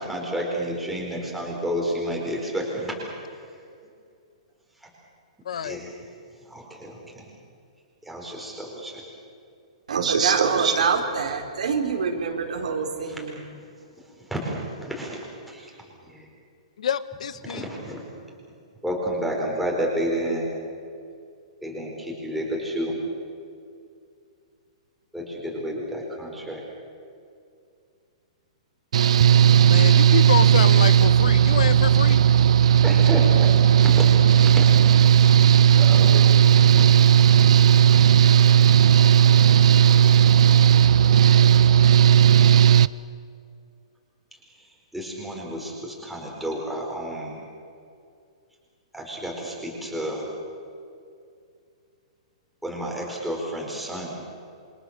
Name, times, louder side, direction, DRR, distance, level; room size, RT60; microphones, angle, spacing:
voice 1, 0.0-2.9 5.6-5.9 6.5-7.2 8.0-9.0 13.1-13.2 14.3-15.2 15.4-15.7 16.0-16.2 17.5-18.0 18.8-20.5 21.6-23.0 25.1-26.6 32.8-33.5 33.8-35.1 35.7-36.3 36.8-36.9 44.9-47.4 48.9-50.2 52.6-54.2, equal, ahead, -3 dB, 4.4 m, -30 dB
voice 2, 5.4-5.8 16.8-17.7 29.6-32.2, left 8 dB, 70° left, 14 dB, 1.3 m, -27 dB
voice 3, 9.9-13.4, right 5 dB, 85° right, 3 dB, 4.5 m, -24 dB
Engine / Mechanical fan, 28.9-42.9, right 9 dB, 65° right, 0.6 m, -15 dB
28.0 x 26.0 x 6.7 m, 2.4 s
hypercardioid pair, 175°, 4 cm